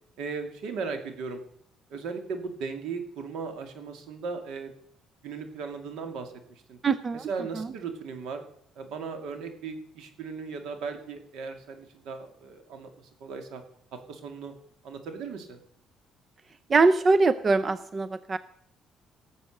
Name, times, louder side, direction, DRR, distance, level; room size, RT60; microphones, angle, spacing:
voice 1, 0.2-1.4 1.9-4.7 5.2-6.8 7.1-8.4 8.8-13.6 14.1-14.5 14.8-15.6, right 5 dB, 80° right, 6 dB, 2.5 m, -37 dB
voice 2, 6.8-7.3 7.6-7.7 16.7-18.4, right 3 dB, 30° right, 14 dB, 0.5 m, -22 dB
18.5 x 7.4 x 6.6 m, 0.68 s
cardioid pair, 130°, 0 cm